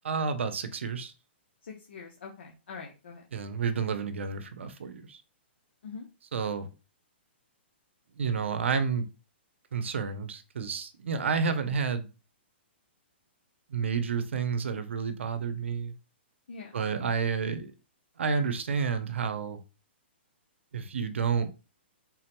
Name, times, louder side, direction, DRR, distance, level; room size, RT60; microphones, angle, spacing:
voice 1, 0.0-1.1 3.3-5.2 6.3-6.7 8.2-9.1 9.7-12.1 13.7-15.9 16.7-17.7 18.2-19.6 20.7-21.5, right 5 dB, 90° right, 0.6 m, -30 dB
voice 2, 1.6-3.2 5.8-6.1 16.5-16.7, left 5 dB, 70° left, 0.7 m, -44 dB
3.6 x 2.2 x 2.9 m
hypercardioid pair, 170°, 6 cm